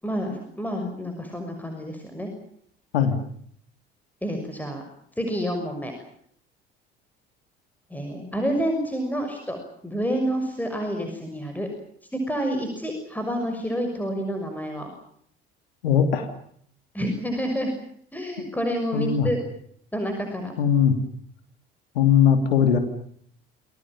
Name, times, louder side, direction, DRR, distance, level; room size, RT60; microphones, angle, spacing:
voice 1, 0.0-2.3 4.2-4.8 5.2-5.9 7.9-11.7 12.3-14.9 16.9-17.7 18.1-19.4 19.9-20.5, equal, 5° left, 4 dB, 6.2 m, -28 dB
voice 2, 15.8-16.3 18.9-19.3 20.6-20.9 21.9-22.8, left 8 dB, 75° left, 7 dB, 3.1 m, -19 dB
28.5 x 21.5 x 7.4 m, 0.65 s
figure-of-eight pair, 55°, 30 cm